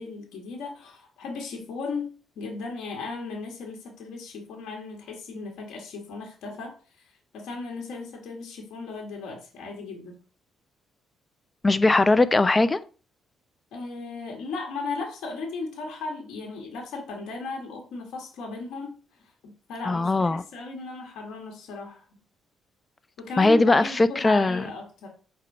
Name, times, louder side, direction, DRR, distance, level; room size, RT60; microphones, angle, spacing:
voice 1, 0.0-10.2 13.7-22.0 23.2-25.1, left 3 dB, 85° left, 1.9 m, -36 dB
voice 2, 11.6-12.8 19.9-20.4 23.4-24.7, left 2 dB, 25° left, 0.5 m, -20 dB
4.3 x 4.1 x 5.5 m
cardioid pair, 90°, 0 cm